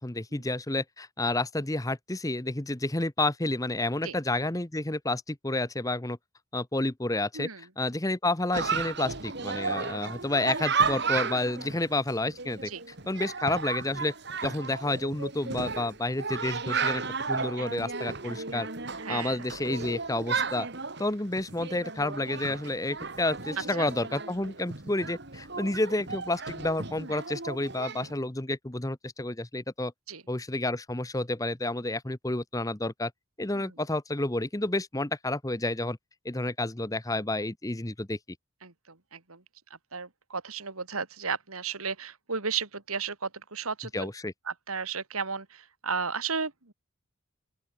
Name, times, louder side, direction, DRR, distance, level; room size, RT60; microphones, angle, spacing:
voice 1, 0.0-6.2 6.5-12.7 13.1-14.1 14.4-18.7 19.1-20.7 21.0-29.9 30.3-33.1 33.4-36.0 36.2-38.2 43.9-44.3, left 2 dB, 15° left, 1.0 m, -30 dB
Chatter, 8.5-28.1, right 5 dB, 50° right, 2.4 m, -34 dB
voice 2, 19.0-19.4 23.8-23.9 27.0-27.1 30.1-30.2 33.5-33.6 38.6-38.7 39.1-39.4 39.9-44.1 44.5-46.7, right 5 dB, 85° right, 3.0 m, -34 dB
open air
head